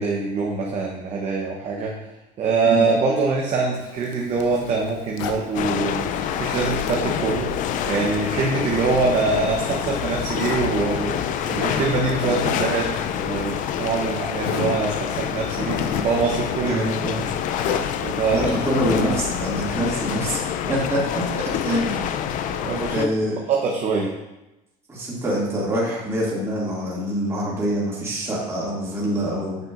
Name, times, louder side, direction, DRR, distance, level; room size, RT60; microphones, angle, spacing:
voice 1, 0.0-1.9 2.4-7.5 7.8-17.3 18.0-18.5 20.6-20.7 22.3-23.1 23.5-24.1, right 4 dB, 40° right, -1 dB, 0.9 m, -24 dB
Zipper (clothing), 3.7-5.5 6.1-7.1 7.5-9.8 10.4-10.7 12.1-12.7 13.0-13.1 13.8-13.9 14.4-14.8 15.3-16.2 17.5-17.9 18.6-19.2, left 6 dB, 80° left, 0.8 m, -31 dB
sound 1, 5.5-23.1, left 9 dB, 50° left, 0.5 m, -27 dB
voice 2, 16.6-17.2 18.3-20.4 20.7-22.2 22.9-23.4 24.9-29.6, right 1 dB, 15° right, -7 dB, 2.4 m, -25 dB
8.8 x 5.8 x 2.6 m, 0.97 s
supercardioid pair, 125°, 17 cm